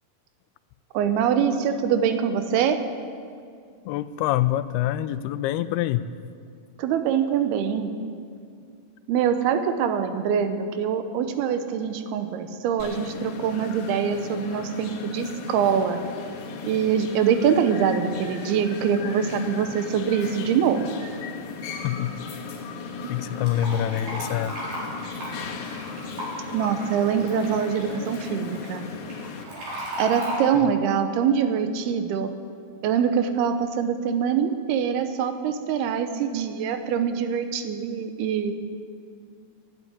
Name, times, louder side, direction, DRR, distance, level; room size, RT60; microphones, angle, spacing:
voice 1, 0.9-2.8 6.8-7.9 9.1-16.0 16.6-20.9 26.5-28.9 30.0-32.3 32.8-38.7, right 7 dB, 90° right, 8 dB, 2.9 m, -24 dB
voice 2, 3.9-6.0 21.8-22.1 23.1-24.6, left 12 dB, 90° left, 14 dB, 2.6 m, -25 dB
sound 1, 12.8-29.4, left 4 dB, 70° left, 3.2 m, -36 dB
Fill (with liquid), 23.4-30.4, equal, 60° right, 5.6 m, -36 dB
12.0 x 11.0 x 9.5 m, 2.2 s
omnidirectional pair, 4.5 m